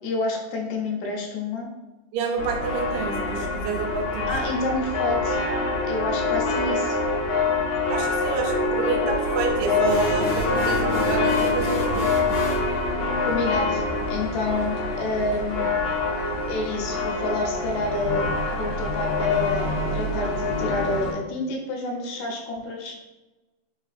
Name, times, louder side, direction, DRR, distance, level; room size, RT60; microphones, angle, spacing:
voice 1, 0.0-1.7 4.3-5.4 5.8-7.0 13.2-13.8 14.1-15.7 16.5-23.0, left 2 dB, 80° left, 1 dB, 2.1 m, -28 dB
voice 2, 2.1-4.3 7.9-12.2, right 5 dB, 80° right, 2 dB, 2.0 m, -28 dB
sound 1, 2.4-21.1, left 3 dB, 60° left, 1.9 m, -25 dB
sound 2, 9.8-12.7, equal, 35° left, 1.3 m, -31 dB
4.3 x 3.9 x 2.4 m, 1.1 s
omnidirectional pair, 3.6 m